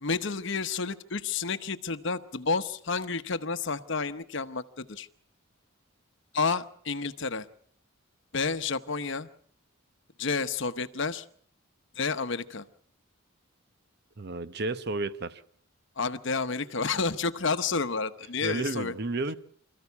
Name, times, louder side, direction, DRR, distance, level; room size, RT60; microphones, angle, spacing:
voice 1, 0.0-5.1 6.3-7.5 8.3-9.3 10.2-11.3 12.0-12.6 16.0-18.9, left 4 dB, 60° left, 1.0 m, -30 dB
voice 2, 14.2-15.4 18.4-19.4, right 2 dB, 50° right, 0.9 m, -32 dB
26.0 x 14.5 x 8.2 m
head